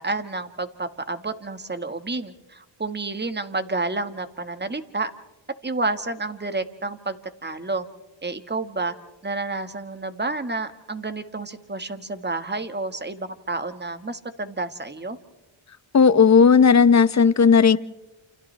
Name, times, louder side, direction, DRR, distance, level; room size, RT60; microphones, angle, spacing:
voice 1, 0.0-5.1 5.6-7.9 8.2-8.9 9.2-15.2, right 3 dB, 20° right, 9 dB, 1.7 m, -30 dB
voice 2, 15.9-17.8, left 6 dB, 35° left, 15 dB, 0.8 m, -14 dB
29.0 x 28.0 x 3.4 m, 1.0 s
cardioid pair, 75°, 49 cm